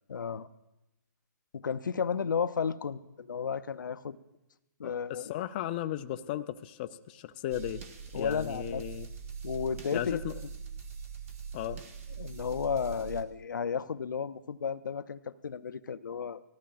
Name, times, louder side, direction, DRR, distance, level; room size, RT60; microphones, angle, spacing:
voice 1, 0.1-0.5 1.5-4.2 4.8-5.3 8.1-8.8 9.4-10.2 12.2-16.4, left 6 dB, 85° left, 12 dB, 0.5 m, -33 dB
voice 2, 4.8-7.8 8.1-9.1 9.9-10.4 11.5-11.8, left 12 dB, 30° left, 8 dB, 0.4 m, -36 dB
sound 1, 7.5-13.2, right 6 dB, 45° right, 1.4 m, -42 dB
18.5 x 13.5 x 2.4 m, 0.96 s
hypercardioid pair, 150°, 10 cm